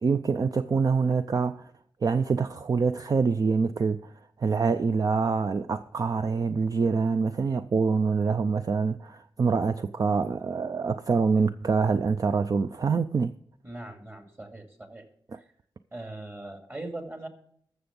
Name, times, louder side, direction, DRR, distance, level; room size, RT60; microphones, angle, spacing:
voice 1, 0.0-1.7 2.0-4.1 4.4-13.3, right 5 dB, 50° right, 0.4 m, -25 dB
voice 2, 13.6-15.1 15.9-17.3, right 2 dB, 30° right, 2.4 m, -40 dB
13.0 x 6.9 x 5.3 m
cardioid pair, 65°, 8 cm